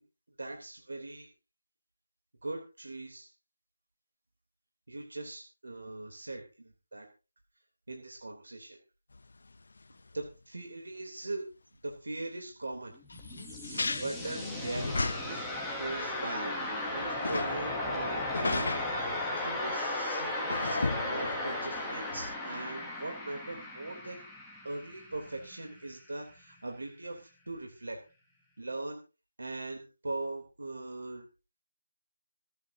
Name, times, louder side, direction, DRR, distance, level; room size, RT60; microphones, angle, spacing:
voice 1, 0.4-1.3 2.4-3.3 4.9-7.1 7.9-8.8 10.1-11.4 11.8-12.9 13.6-15.5 15.8-18.8 19.0-20.8 21.0-24.3 24.6-28.0 28.6-29.0 29.4-31.3, right 2 dB, 75° right, 2 dB, 3.3 m, -40 dB
sound 1, 9.1-9.2 9.8-9.9 10.1-10.2 13.1-15.6 15.9-16.0 16.5-17.6 18.3-18.9 20.5-21.7 22.1-22.3, left 3 dB, 50° left, 0.7 m, -35 dB
sound 2, 12.9-25.8, left 1 dB, ahead, 1.0 m, -36 dB
27.0 x 9.3 x 2.8 m, 0.32 s
figure-of-eight pair, 180°, 0 cm